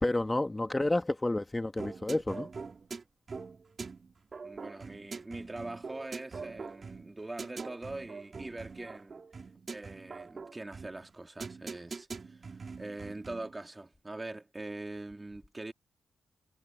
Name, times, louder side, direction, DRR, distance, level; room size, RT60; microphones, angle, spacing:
voice 1, 0.0-2.5, left 2 dB, 15° left, 1.9 m, -30 dB
sound 1, 1.8-13.6, right 4 dB, 45° right, 5.9 m, -44 dB
voice 2, 4.4-9.3 9.7-12.4 12.8-15.7, right 2 dB, 20° right, 2.9 m, -43 dB
cardioid pair, 100°, 0 cm